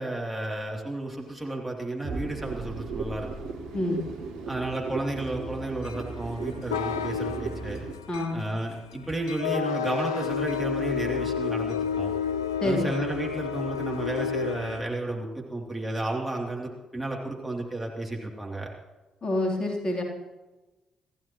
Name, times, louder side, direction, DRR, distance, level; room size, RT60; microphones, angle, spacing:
voice 1, 0.0-3.3 4.5-7.8 8.3-12.1 12.6-18.7, right 1 dB, 10° right, -1 dB, 3.0 m, -32 dB
sound 1, 2.0-7.9, right 4 dB, 70° right, 1.7 m, -36 dB
sound 2, 5.8-14.8, left 7 dB, 80° left, 0.4 m, -31 dB
voice 2, 12.6-12.9 19.2-20.0, left 1 dB, 35° left, 1 dB, 3.4 m, -27 dB
27.0 x 14.5 x 3.1 m, 1.1 s
figure-of-eight pair, 40°, 2 cm